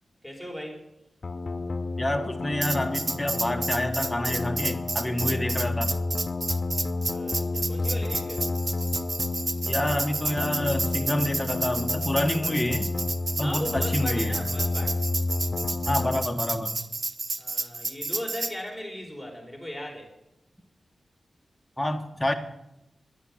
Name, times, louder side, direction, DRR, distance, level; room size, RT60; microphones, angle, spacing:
voice 1, 0.2-0.8 7.1-8.5 13.4-15.0 17.4-20.1, equal, 5° right, 1 dB, 4.4 m, -37 dB
sound 1, 1.2-16.2, left 3 dB, 55° left, 0.6 m, -30 dB
voice 2, 2.0-5.9 9.6-12.9 13.4-14.3 15.9-16.8 21.8-22.3, left 1 dB, 10° left, 3 dB, 1.5 m, -28 dB
Tambourine, 2.6-18.5, right 3 dB, 45° right, 0.8 m, -31 dB
10.5 x 10.5 x 7.3 m, 0.86 s
cardioid pair, 70°, 0 cm